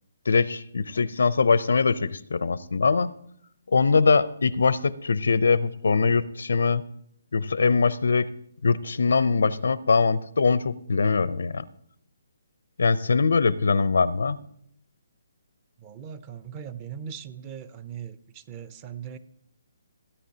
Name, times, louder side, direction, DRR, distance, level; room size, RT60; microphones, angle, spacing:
voice 1, 0.3-3.2 3.7-6.8 7.3-8.3 8.6-11.6 12.8-14.4, left 4 dB, 80° left, 17 dB, 0.5 m, -22 dB
voice 2, 15.8-19.2, right 8 dB, 20° right, 14 dB, 0.4 m, -40 dB
16.5 x 9.3 x 2.8 m, 0.73 s
hypercardioid pair, 170°, 0 cm